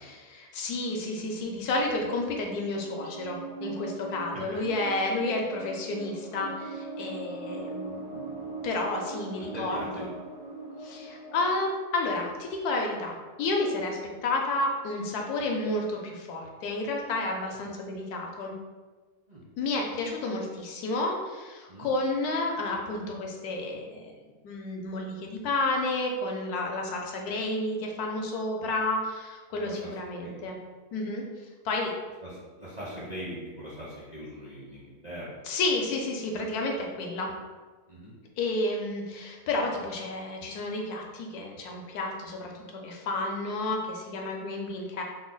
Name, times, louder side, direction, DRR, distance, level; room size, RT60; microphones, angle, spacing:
voice 1, 0.1-10.1 10.8-18.5 19.6-24.1 24.4-30.6 30.9-31.2 31.6-31.9 35.5-37.3 38.4-42.5 42.8-45.0, left 2 dB, 75° left, 1 dB, 1.1 m, -31 dB
sound 1, 2.4-11.6, right 3 dB, 85° right, 1.2 m, -40 dB
voice 2, 9.4-10.1 19.3-19.4 21.7-21.9 29.5-30.3 32.2-35.4 37.9-38.1, equal, 45° right, -8 dB, 0.5 m, -41 dB
3.6 x 2.0 x 3.8 m, 1.4 s
omnidirectional pair, 1.7 m